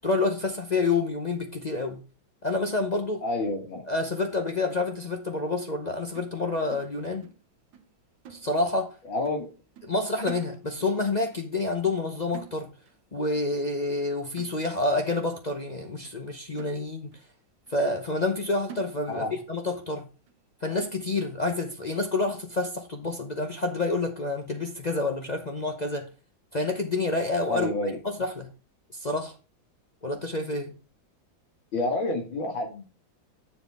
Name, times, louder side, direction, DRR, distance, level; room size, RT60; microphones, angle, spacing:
voice 1, 0.0-2.0 2.4-3.2 3.9-7.3 8.3-9.0 9.8-12.7 13.1-17.2 17.7-20.1 20.6-26.1 26.5-27.7 28.0-28.5 28.9-29.4 30.0-30.8, left 3 dB, 45° left, 0.5 m, -28 dB
voice 2, 3.2-3.8 9.1-9.5 19.1-19.3 27.5-28.0 31.7-32.9, left 2 dB, 80° left, 2.8 m, -29 dB
sound 1, 6.1-7.5 7.7-8.0 8.2-8.9 9.2-9.5 9.8-11.0 11.3-11.5 11.8-13.0 13.3-13.6 13.9-14.1 14.4-15.0 15.5-15.6 16.0-16.2 16.6-17.3 17.7-17.8 18.2-18.4 18.7-19.4 19.7-19.8 20.3-20.4 20.8-21.3 21.8-21.9 22.3-22.5, right 9 dB, 75° right, 1.5 m, -48 dB
7.2 x 7.2 x 3.5 m
omnidirectional pair, 2.1 m